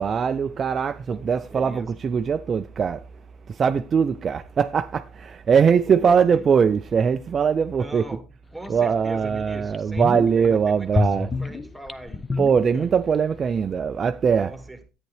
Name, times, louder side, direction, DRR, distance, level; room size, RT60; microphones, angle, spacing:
voice 1, 0.0-8.1 8.7-11.3 12.4-14.5, right 6 dB, 35° right, 0.4 m, -21 dB
voice 2, 1.1-2.0 5.9-6.7 7.8-8.2 8.5-12.3 12.7-12.9 14.4-14.9, right 1 dB, ahead, 1.8 m, -39 dB
sound 1, 8.6-8.7 9.2-9.3 9.7-10.5 10.9-13.2 13.4-13.5, left 3 dB, 20° left, 0.7 m, -28 dB
10.5 x 9.0 x 3.2 m
supercardioid pair, 105°, 0 cm